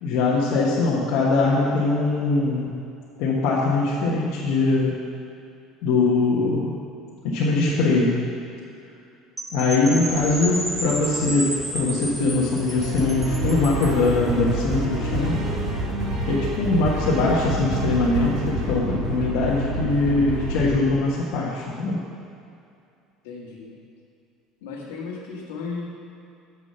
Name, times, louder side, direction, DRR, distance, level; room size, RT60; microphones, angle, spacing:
voice 1, 0.0-2.7 3.2-5.0 5.8-6.8 7.2-8.2 9.5-15.4 16.3-22.0, left 3 dB, 70° left, -5 dB, 1.2 m, -22 dB
Percussion / Wind chime, 9.4-14.1, equal, 10° right, 1.4 m, -32 dB
sound 1, 10.1-16.4, left 3 dB, 25° left, 1.0 m, -42 dB
sound 2, 12.8-20.7, right 1 dB, 65° right, 2.0 m, -27 dB
voice 2, 23.2-23.7 24.6-25.8, left 4 dB, 90° left, -3 dB, 1.6 m, -35 dB
7.4 x 6.4 x 5.5 m, 2.5 s
supercardioid pair, 100°, 0 cm